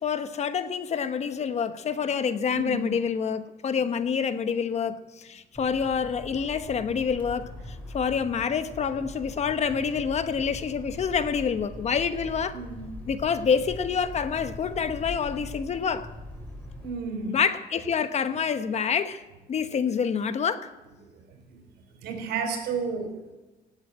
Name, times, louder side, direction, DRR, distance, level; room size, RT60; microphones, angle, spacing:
voice 1, 0.0-7.5 7.9-12.6 13.1-16.1 17.3-19.2 19.5-20.7, left 6 dB, 40° left, 1.0 m, -27 dB
voice 2, 2.5-2.9 12.5-12.8 16.8-17.4 21.1-21.6 22.0-23.4, right 5 dB, 80° right, 4.3 m, -32 dB
sound 1, 5.5-16.9, left 1 dB, 10° left, 4.4 m, -41 dB
17.5 x 8.0 x 8.8 m
cardioid pair, 110°, 17 cm